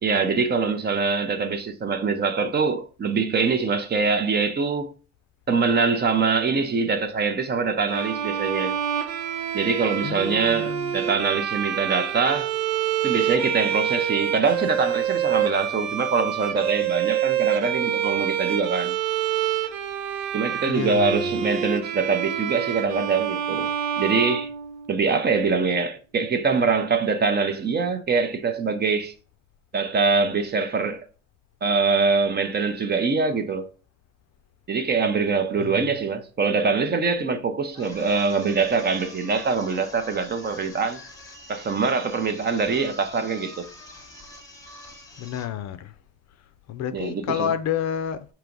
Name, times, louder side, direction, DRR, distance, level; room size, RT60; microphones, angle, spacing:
voice 1, 0.0-4.9 5.5-8.8 9.5-12.5 13.0-18.9 20.3-23.7 24.0-24.5 24.9-29.1 29.7-31.0 31.6-33.7 34.7-41.0 41.5-43.7 46.9-47.5, right 4 dB, 30° right, 0.5 m, -24 dB
Bowed string instrument, 7.9-25.1, right 9 dB, 90° right, 0.7 m, -27 dB
voice 2, 10.0-11.0 20.7-21.4 35.6-35.8 45.2-45.9 46.7-48.3, left 9 dB, 50° left, 0.5 m, -30 dB
sound 1, 37.7-45.6, left 1 dB, 10° left, 1.0 m, -45 dB
4.7 x 3.0 x 3.7 m
cardioid pair, 135°, 35 cm